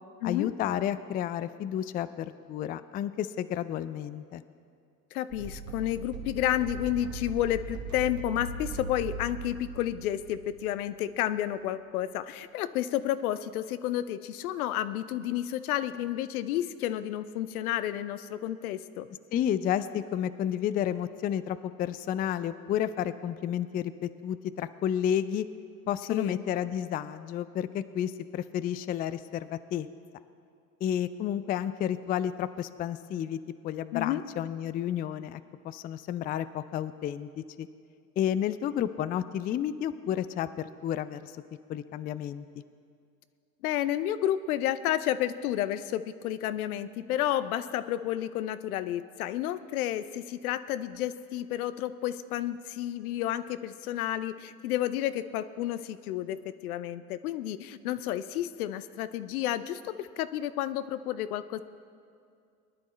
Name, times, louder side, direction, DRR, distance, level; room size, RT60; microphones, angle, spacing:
voice 1, 0.2-4.4 19.3-25.5 25.9-29.9 30.8-37.7 38.2-41.3 41.7-42.5, left 10 dB, 25° left, 14 dB, 0.3 m, -31 dB
voice 2, 5.1-19.1 26.1-26.4 33.9-34.2 43.6-61.6, left 12 dB, 75° left, 14 dB, 0.6 m, -31 dB
sound 1, 5.3-11.0, right 3 dB, 40° right, 1.5 m, -39 dB
21.5 x 10.5 x 3.1 m, 2.4 s
hypercardioid pair, 70°, 44 cm